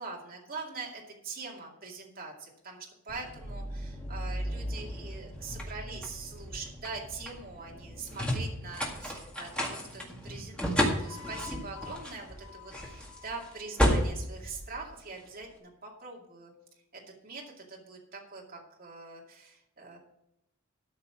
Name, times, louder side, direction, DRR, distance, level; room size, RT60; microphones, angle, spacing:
voice 1, 0.0-16.5 16.9-20.0, right 4 dB, 40° right, -1 dB, 2.4 m, -43 dB
sound 1, 3.1-15.4, equal, 5° left, 1.9 m, -33 dB
13.0 x 5.8 x 6.2 m, 0.82 s
head